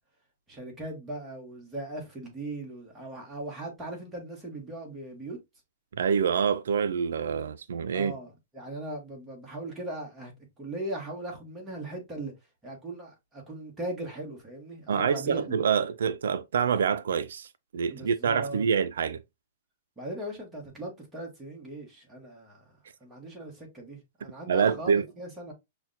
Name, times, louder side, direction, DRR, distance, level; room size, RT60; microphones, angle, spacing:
voice 1, 0.5-5.4 7.9-12.3 12.6-15.6 17.9-18.6 20.0-22.6 23.0-25.5, right 1 dB, 10° right, 1.0 m, -39 dB
voice 2, 5.9-8.1 14.9-19.2 24.5-25.0, right 7 dB, 85° right, 0.3 m, -26 dB
5.6 x 2.1 x 2.5 m
hypercardioid pair, 170°, 0 cm